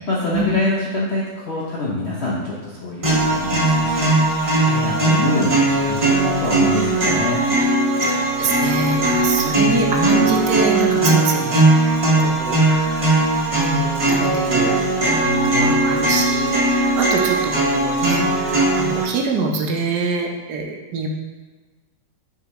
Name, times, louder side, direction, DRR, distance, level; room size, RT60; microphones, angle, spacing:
voice 1, 0.1-4.1 4.4-7.4 9.3-9.7 15.1-15.7, left 2 dB, 50° left, -5 dB, 0.8 m, -25 dB
sound 1, 3.0-19.0, right 2 dB, 20° right, 1.5 m, -19 dB
voice 2, 8.1-13.1 13.5-14.8 15.3-21.1, right 4 dB, 70° right, 1 dB, 1.2 m, -25 dB
6.6 x 4.8 x 3.0 m, 1.3 s
omnidirectional pair, 2.0 m